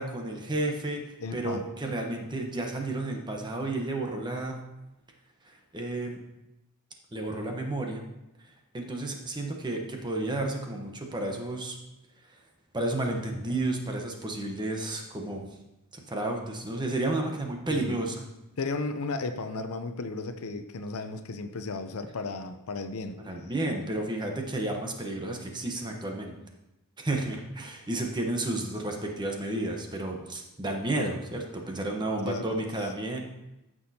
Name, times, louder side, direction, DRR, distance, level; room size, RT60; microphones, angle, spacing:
voice 1, 0.0-4.6 5.4-6.2 7.1-8.0 8.7-11.8 12.7-15.5 15.9-18.2 23.2-26.3 27.0-33.2, right 2 dB, 20° right, 2 dB, 1.0 m, -32 dB
voice 2, 1.2-1.7 17.7-18.0 18.6-23.2 32.2-32.6, left 3 dB, 70° left, 8 dB, 0.7 m, -34 dB
14.0 x 6.2 x 2.8 m, 0.94 s
head